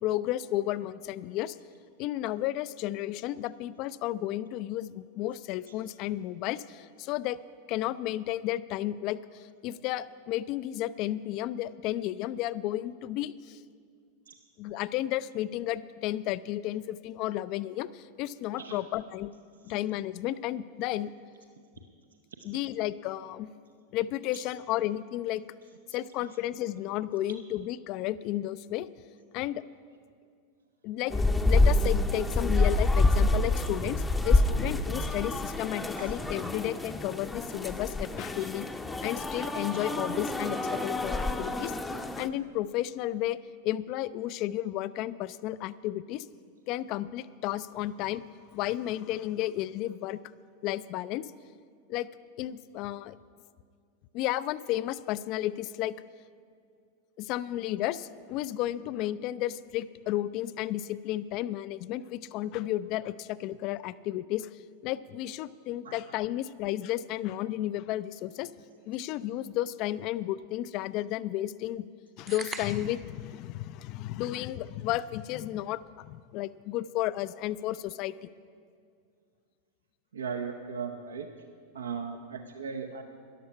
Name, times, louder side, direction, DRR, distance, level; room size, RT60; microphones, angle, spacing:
voice 1, 0.0-1.6 2.0-7.4 7.7-13.6 14.6-19.3 19.6-21.1 22.4-23.5 23.9-25.4 25.9-28.9 29.3-29.6 30.8-31.1 31.5-38.7 39.0-41.7 42.2-43.4 43.6-46.3 46.7-48.2 48.5-50.2 50.6-51.3 51.9-52.1 52.4-53.2 54.1-56.0 57.2-64.5 64.8-68.5 68.9-71.9 72.2-78.3, left 14 dB, 40° left, 17 dB, 0.4 m, -33 dB
sound 1, 31.1-42.3, left 2 dB, 10° left, 0.7 m, -27 dB
sound 2, 72.3-73.1, right 5 dB, 20° right, 0.8 m, -40 dB
voice 2, 80.1-81.3 81.7-83.0, right 6 dB, 70° right, 5 dB, 0.7 m, -37 dB
13.5 x 11.0 x 5.6 m, 2.2 s
figure-of-eight pair, 90°, 0 cm